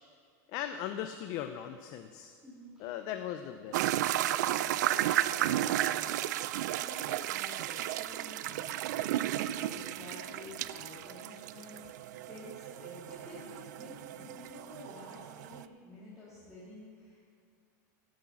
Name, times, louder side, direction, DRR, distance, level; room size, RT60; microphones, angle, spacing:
voice 1, 0.5-2.4 2.8-4.1, left 10 dB, 40° left, 8 dB, 0.5 m, -39 dB
voice 2, 2.4-3.0 4.1-17.3, left 1 dB, 5° right, -11 dB, 2.4 m, -50 dB
sound 1, 3.7-15.6, right 13 dB, 80° right, 0.4 m, -33 dB
sound 2, 9.8-9.9 10.1-10.8 13.1-13.9, left 1 dB, 10° left, 1.8 m, -52 dB
12.5 x 6.1 x 7.0 m, 2.2 s
supercardioid pair, 160°, 9 cm